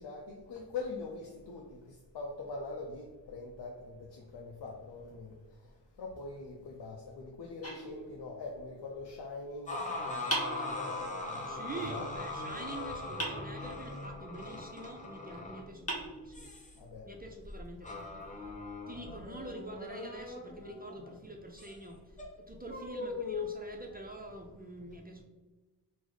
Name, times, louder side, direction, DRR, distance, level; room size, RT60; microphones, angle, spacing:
voice 1, 0.0-5.3 6.0-12.1 12.7-12.8 16.8-17.1, left 3 dB, 70° left, 0 dB, 0.5 m, -43 dB
sound 1, 7.6-8.6 10.3-11.3 13.2-14.1 15.3-15.4 15.9-16.8, right 1 dB, 35° left, 1.0 m, -39 dB
sound 2, 9.7-21.1 21.6-21.7 22.1-24.1, left 3 dB, 20° left, 0.7 m, -40 dB
voice 2, 11.5-16.5 17.1-18.3 18.9-25.2, right 2 dB, 25° right, 1 dB, 0.3 m, -45 dB
3.8 x 2.0 x 3.1 m, 1.2 s
cardioid pair, 70°, 42 cm